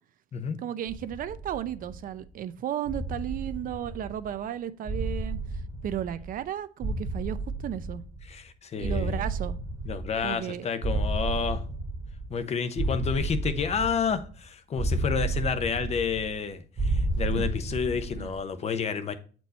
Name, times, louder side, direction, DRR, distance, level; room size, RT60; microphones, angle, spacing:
voice 1, 0.6-5.4 5.8-8.0 8.8-9.6 10.2-10.7 17.4-17.5 18.2-18.3, right 10 dB, 55° right, 0.6 m, -34 dB
sound 1, 0.9-2.2 2.9-4.4 4.9-6.5 6.8-8.4 8.8-10.5 10.8-12.4 12.8-14.4 14.8-16.4 16.8-18.4, right 2 dB, 25° right, 1.3 m, -32 dB
voice 2, 8.2-9.2 9.8-11.6 12.3-19.1, left 6 dB, 40° left, 0.9 m, -30 dB
7.8 x 4.6 x 4.1 m
cardioid pair, 110°, 17 cm